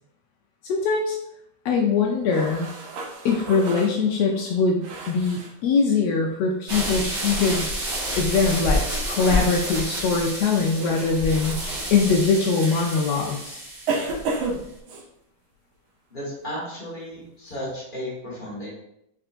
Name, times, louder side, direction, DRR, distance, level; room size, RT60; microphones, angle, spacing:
voice 1, 0.7-1.2 1.6-2.7 3.2-7.7 8.2-11.6 11.9-13.6, left 4 dB, 80° left, -1 dB, 1.5 m, -22 dB
sound 1, 2.3-5.5 8.0-8.1 9.1-9.6 10.8-11.2 12.1-12.2 13.9-15.0, right 3 dB, 90° right, 1.1 m, -32 dB
sound 2, 6.7-14.6, equal, 50° right, 0.8 m, -29 dB
voice 2, 16.1-18.7, equal, 35° left, -7 dB, 0.8 m, -34 dB
4.8 x 4.4 x 2.5 m, 0.79 s
omnidirectional pair, 3.3 m